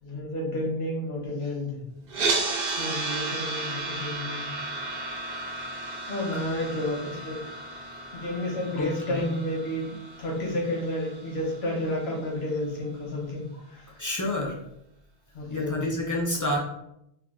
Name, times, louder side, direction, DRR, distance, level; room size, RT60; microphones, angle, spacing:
voice 1, 0.0-1.8 2.7-4.5 6.1-7.5 8.1-13.9 15.3-15.8, left 1 dB, 85° left, -2 dB, 1.1 m, -31 dB
sound 1, 2.1-12.2, right 3 dB, 65° right, 0.8 m, -33 dB
voice 2, 8.8-9.3 14.0-14.5 15.5-16.6, left 1 dB, 30° left, -1 dB, 0.3 m, -29 dB
2.8 x 2.3 x 3.5 m, 0.79 s
omnidirectional pair, 1.0 m